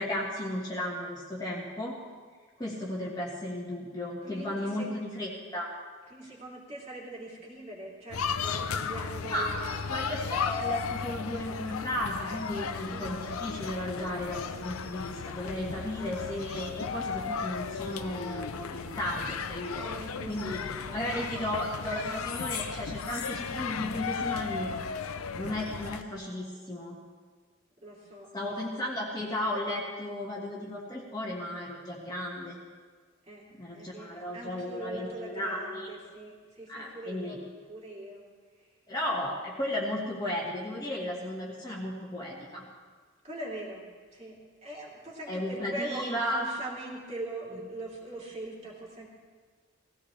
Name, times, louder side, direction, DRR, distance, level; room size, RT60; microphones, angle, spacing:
voice 1, 0.0-2.0 2.6-5.7 6.2-6.3 9.3-9.5 9.9-19.9 20.3-20.6 20.9-24.7 25.4-27.0 28.3-32.6 33.6-35.9 36.7-37.4 38.9-42.7 45.3-46.4, left 1 dB, 20° left, -4 dB, 1.6 m, -34 dB
voice 2, 4.2-4.9 6.1-9.8 12.9-13.1 19.7-21.5 27.8-28.8 33.3-33.5 33.7-37.4 37.7-38.3 43.2-43.8 44.1-49.1, right 1 dB, 30° right, -4 dB, 3.0 m, -42 dB
sound 1, 8.1-26.0, left 6 dB, 90° left, 0.6 m, -35 dB
19.0 x 16.0 x 3.3 m, 1.5 s
head